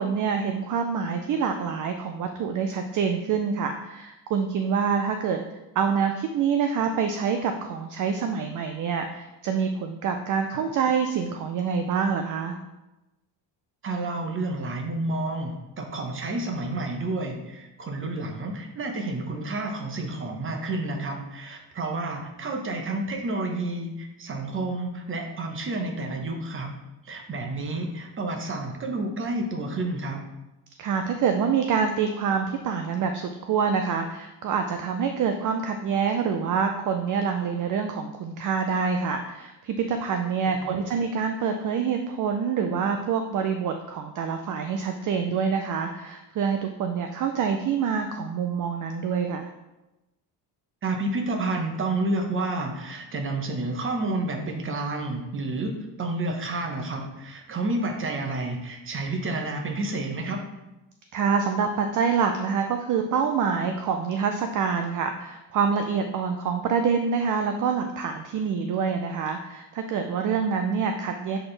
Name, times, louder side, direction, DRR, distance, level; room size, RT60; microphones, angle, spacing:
voice 1, 0.0-12.6 30.8-49.5 61.1-71.4, right 6 dB, 45° right, 6 dB, 0.5 m, -26 dB
voice 2, 13.8-26.8 27.0-30.2 40.7-40.8 50.8-60.4, right 2 dB, 30° right, 3 dB, 0.9 m, -30 dB
7.7 x 4.3 x 3.3 m, 1.0 s
cardioid pair, 140°, 43 cm